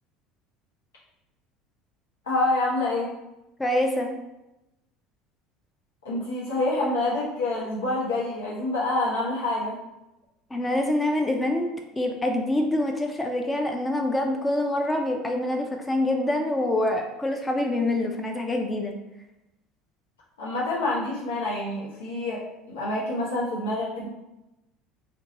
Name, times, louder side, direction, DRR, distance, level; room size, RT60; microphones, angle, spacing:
voice 1, 2.3-3.1 6.0-9.8 20.4-22.4 22.7-24.1, left 2 dB, 85° left, -6 dB, 0.7 m, -27 dB
voice 2, 3.6-4.2 10.5-11.7 12.0-18.9, left 1 dB, 15° left, 3 dB, 0.5 m, -25 dB
2.6 x 2.2 x 3.8 m, 0.94 s
hypercardioid pair, 75°, 0 cm